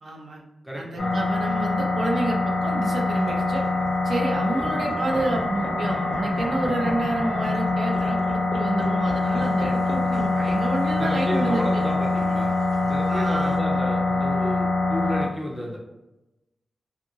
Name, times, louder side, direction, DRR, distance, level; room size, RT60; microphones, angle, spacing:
voice 1, 0.0-0.4 0.7-3.6 4.0-11.9 13.1-13.8, right 1 dB, 65° right, 0 dB, 0.6 m, -29 dB
voice 2, 0.6-1.2 10.9-15.8, equal, 5° right, -3 dB, 0.5 m, -32 dB
sound 1, 1.0-15.2, left 2 dB, 85° left, 0.9 m, -24 dB
sound 2, 3.1-13.6, left 1 dB, 60° left, 0.5 m, -41 dB
2.7 x 2.5 x 2.7 m, 0.96 s
wide cardioid pair, 125°, 0 cm